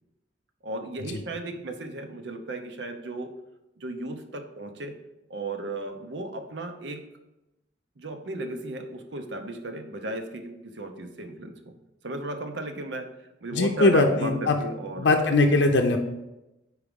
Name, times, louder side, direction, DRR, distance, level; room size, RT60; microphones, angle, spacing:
voice 1, 0.6-3.3 3.8-5.0 5.3-7.0 8.0-11.7 12.0-13.1 13.4-15.3, right 2 dB, 70° right, 6 dB, 0.7 m, -35 dB
voice 2, 13.5-14.6 15.0-16.0, left 3 dB, 70° left, 3 dB, 0.6 m, -20 dB
4.8 x 4.8 x 5.2 m, 0.94 s
head